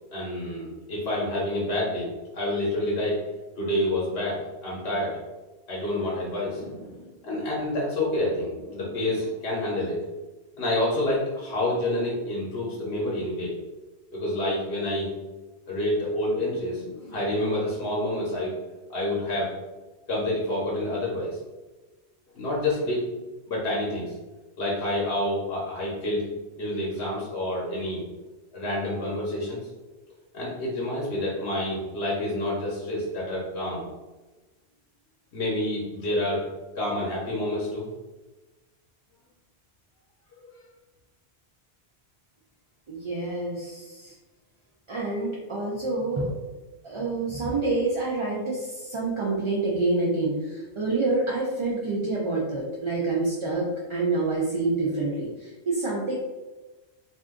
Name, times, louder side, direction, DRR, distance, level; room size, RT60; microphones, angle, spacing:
voice 1, 0.1-3.2 3.6-5.2 5.7-10.0 10.6-13.5 14.1-15.1 15.7-18.5 18.9-19.5 20.1-21.4 22.3-23.0 23.5-24.2 24.6-26.2 26.5-28.0 28.5-29.6 30.3-33.8 35.3-36.4 36.8-37.9 40.4-40.6, left 1 dB, 70° left, -5 dB, 1.1 m, -28 dB
voice 2, 42.9-44.1 44.9-46.3 46.8-56.2, right 3 dB, 45° right, -5 dB, 0.4 m, -27 dB
2.6 x 2.4 x 3.5 m, 1.1 s
omnidirectional pair, 1.1 m